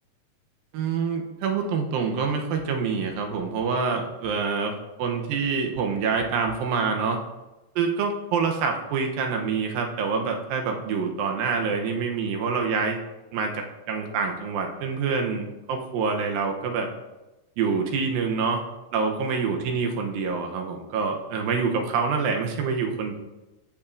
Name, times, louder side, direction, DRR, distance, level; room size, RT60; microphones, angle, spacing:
voice 1, 0.7-4.7 5.0-7.2 7.8-13.0 13.3-16.9 17.6-18.6 18.9-23.1, right 5 dB, 90° right, 3 dB, 2.7 m, -26 dB
15.0 x 5.7 x 2.7 m, 1.0 s
omnidirectional pair, 4.0 m